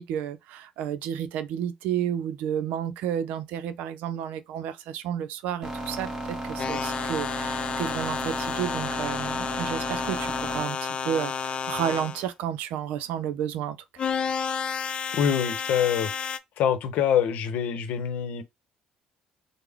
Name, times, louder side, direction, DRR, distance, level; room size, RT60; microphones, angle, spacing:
voice 1, 0.0-14.0, right 9 dB, 80° right, 0.5 m, -31 dB
sound 1, 5.6-10.6, right 1 dB, 25° right, 1.5 m, -34 dB
sound 2, 6.6-12.3 14.0-16.4, left 6 dB, 40° left, 0.4 m, -31 dB
voice 2, 15.1-16.1 16.6-18.4, left 8 dB, 75° left, 0.8 m, -25 dB
3.5 x 2.1 x 3.4 m
cardioid pair, 95°, 3 cm